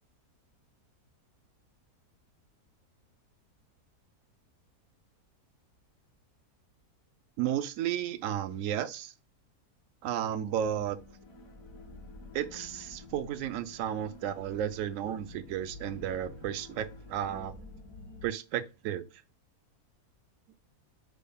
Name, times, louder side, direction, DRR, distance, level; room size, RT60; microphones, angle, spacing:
voice 1, 7.4-9.1 10.0-11.0 12.3-17.5 18.2-19.1, right 10 dB, 70° right, 0.8 m, -33 dB
sound 1, 10.5-18.2, left 3 dB, 85° left, 2.0 m, -49 dB
6.3 x 3.4 x 2.2 m
omnidirectional pair, 1.7 m